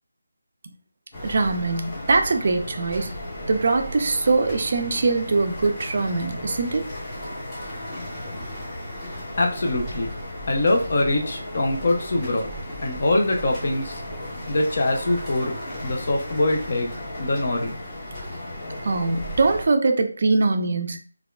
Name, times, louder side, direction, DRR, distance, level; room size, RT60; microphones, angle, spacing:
sound 1, 1.1-19.7, left 1 dB, 20° left, 0.9 m, -35 dB
voice 1, 1.2-3.1 3.5-6.9 18.8-21.0, right 3 dB, 45° right, 5 dB, 0.4 m, -22 dB
voice 2, 9.4-10.1 10.5-12.5 12.8-14.0 14.5-15.5 15.8-16.9 17.2-17.7, left 2 dB, 45° left, 2 dB, 0.6 m, -23 dB
3.5 x 2.3 x 2.3 m, 0.42 s
figure-of-eight pair, 160°, 0 cm